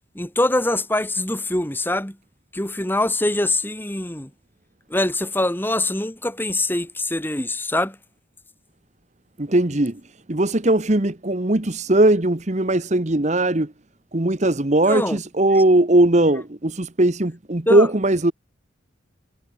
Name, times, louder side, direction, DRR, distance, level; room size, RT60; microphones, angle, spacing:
voice 1, 0.2-2.2 2.5-4.3 4.9-8.0 14.9-15.2 17.7-17.9, left 1 dB, 10° left, 2.1 m, -23 dB
voice 2, 9.4-10.0 10.3-13.7 14.1-18.3, right 1 dB, 35° right, 1.2 m, -19 dB
head